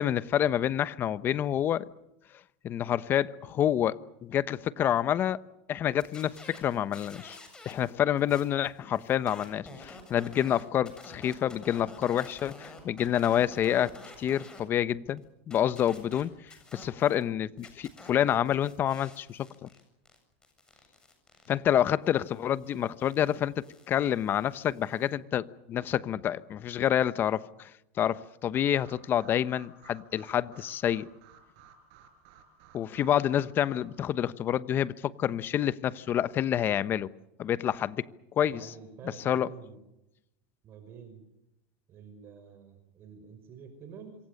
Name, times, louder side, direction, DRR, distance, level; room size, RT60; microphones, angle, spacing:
voice 1, 0.0-1.9 2.6-5.4 5.7-7.4 7.6-15.2 15.5-16.3 16.7-19.7 21.5-27.7 28.0-31.1 32.7-37.1 37.4-38.0 38.4-38.7 39.2-39.5, left 10 dB, 35° left, 1.0 m, -28 dB
sound 1, 5.8-7.9 8.2-14.6 14.9-17.2 17.6-25.1, left 2 dB, 15° left, 7.5 m, -50 dB
sound 2, 28.5-34.1, right 7 dB, 60° right, 5.2 m, -57 dB
voice 2, 38.5-39.8 40.6-41.2 41.9-44.2, right 6 dB, 40° right, 5.0 m, -48 dB
26.5 x 23.5 x 6.7 m
supercardioid pair, 125°, 6 cm